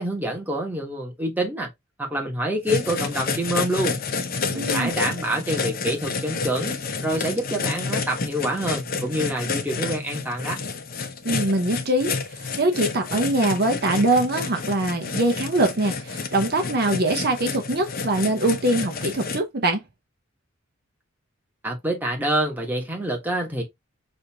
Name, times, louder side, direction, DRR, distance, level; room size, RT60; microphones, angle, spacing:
voice 1, 0.0-1.7 2.0-4.0 4.5-6.7 7.0-10.6 21.6-23.6, right 1 dB, 10° right, 1.2 m, -26 dB
sound 1, 2.7-19.4, left 4 dB, 45° left, 0.7 m, -30 dB
voice 2, 4.5-4.9 11.2-19.8, right 1 dB, 50° right, 0.8 m, -23 dB
6.4 x 2.6 x 2.8 m
head